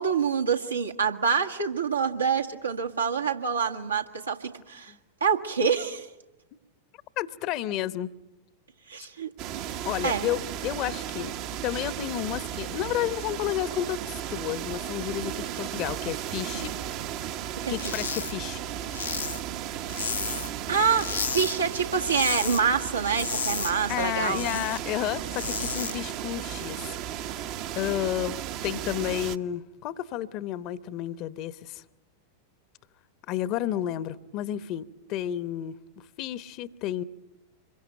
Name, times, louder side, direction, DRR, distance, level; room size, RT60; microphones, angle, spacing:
voice 1, 0.0-4.9 5.2-6.1 8.9-9.3 10.0-10.3 16.6-16.7 17.6-17.7 20.7-24.6, right 6 dB, 80° right, 1.8 m, -26 dB
voice 2, 7.2-8.1 9.8-11.4 11.6-16.7 17.7-18.6 23.9-26.8 27.2-27.5 27.8-31.8 33.3-35.8 36.2-37.0, left 12 dB, 40° left, 0.9 m, -31 dB
sound 1, 9.4-29.4, right 11 dB, 45° right, 1.0 m, -35 dB
sound 2, 17.7-18.3 18.6-20.6 20.9-21.5 21.9-22.6 22.9-24.8 25.2-25.9, left 6 dB, 75° left, 0.9 m, -32 dB
26.5 x 22.5 x 9.0 m
figure-of-eight pair, 90°, 0 cm